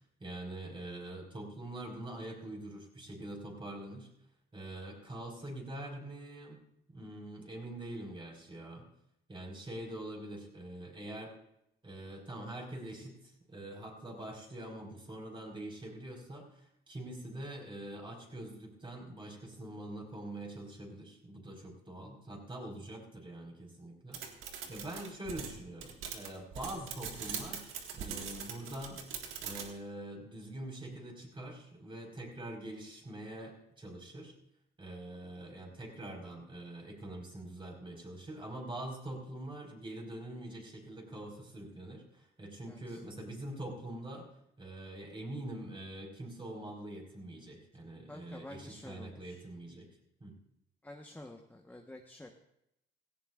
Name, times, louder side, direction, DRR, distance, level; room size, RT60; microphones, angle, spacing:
voice 1, 0.2-4.1 4.5-6.6 6.9-8.9 9.3-11.3 11.8-24.2 24.7-29.0 29.4-34.3 34.8-44.3 44.6-49.9 50.2-50.4, right 1 dB, 25° right, 0 dB, 4.4 m, -44 dB
sound 1, 24.1-29.7, right 7 dB, 90° right, 1.7 m, -42 dB
voice 2, 42.7-43.0 48.1-49.4 50.8-52.3, left 1 dB, 10° left, 2 dB, 1.1 m, -49 dB
17.5 x 15.5 x 2.4 m, 0.78 s
cardioid pair, 90°, 20 cm